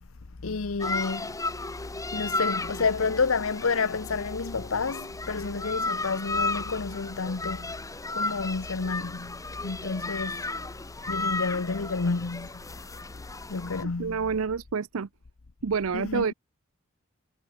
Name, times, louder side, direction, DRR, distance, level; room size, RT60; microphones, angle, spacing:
voice 1, 0.4-1.3 2.1-7.7 8.1-10.5 11.1-12.6 13.5-14.2 15.9-16.3, left 4 dB, 75° left, 0.9 m, -30 dB
sound 1, 0.8-13.8, left 3 dB, 15° left, 1.5 m, -34 dB
voice 2, 13.8-15.1 15.6-16.3, right 5 dB, 90° right, 0.6 m, -28 dB
head